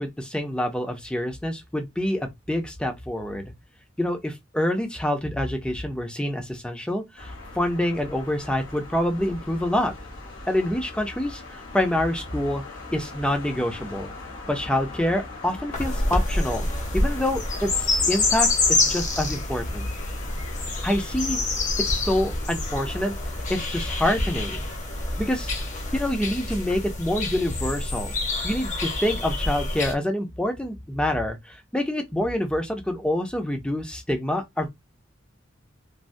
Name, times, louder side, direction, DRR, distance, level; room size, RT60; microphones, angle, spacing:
voice 1, 0.0-3.5 4.0-10.0 10.5-12.6 12.9-14.1 14.5-19.9 20.8-21.4 21.8-23.1 23.5-24.6 25.2-25.5 25.9-28.1 28.4-34.7, left 1 dB, 5° left, 0.5 m, -27 dB
sound 1, 7.2-26.2, left 2 dB, 85° left, 1.0 m, -40 dB
sound 2, 15.7-29.9, left 2 dB, 40° left, 0.9 m, -27 dB
3.2 x 2.1 x 2.6 m
head